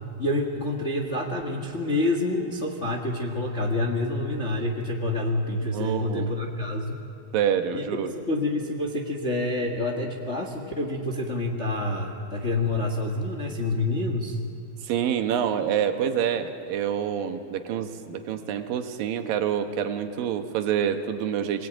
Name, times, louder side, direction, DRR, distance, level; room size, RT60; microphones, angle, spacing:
voice 1, 0.2-7.0 7.7-14.4, left 2 dB, 40° left, 1 dB, 0.9 m, -27 dB
voice 2, 5.6-6.3 7.3-8.1 14.8-21.7, right 9 dB, 85° right, 7 dB, 2.9 m, -27 dB
24.5 x 18.0 x 9.1 m, 2.6 s
omnidirectional pair, 3.9 m